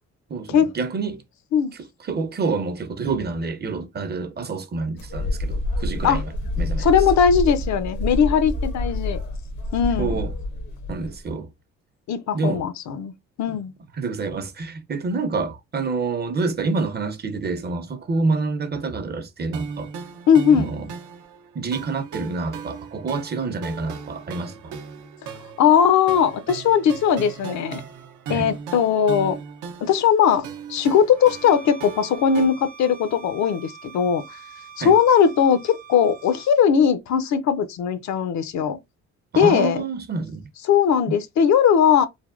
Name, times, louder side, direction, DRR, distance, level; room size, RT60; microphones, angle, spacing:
voice 1, 0.3-1.2 2.0-6.3 6.6-6.9 10.0-10.3 10.9-11.5 12.3-12.6 14.0-19.9 20.5-20.8 21.5-24.8 28.3-28.5 34.8-34.9 39.3-40.4, right 4 dB, 35° right, 0.5 m, -27 dB
sound 1, 5.0-11.3, left 1 dB, 90° left, 1.1 m, -27 dB
voice 2, 6.8-9.2 9.7-10.2 12.1-13.1 13.4-13.7 20.3-20.7 25.2-25.3 25.6-27.8 28.3-29.4 29.8-34.4 34.8-38.8 39.3-39.8 40.7-42.1, left 7 dB, 65° left, 0.5 m, -19 dB
sound 2, 19.5-32.5, right 5 dB, 85° right, 0.6 m, -37 dB
Bowed string instrument, 31.1-36.6, right 5 dB, 60° right, 0.9 m, -44 dB
3.3 x 2.1 x 2.4 m
cardioid pair, 90°, 30 cm